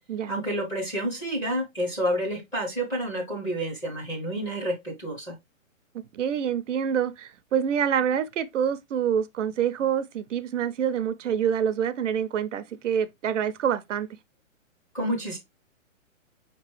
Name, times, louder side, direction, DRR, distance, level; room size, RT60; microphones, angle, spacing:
voice 1, 0.3-5.3 14.9-15.4, equal, 10° left, 0.7 m, -29 dB
voice 2, 6.1-14.1, right 8 dB, 65° right, 0.5 m, -26 dB
5.2 x 3.0 x 3.1 m
hypercardioid pair, 160°, 40 cm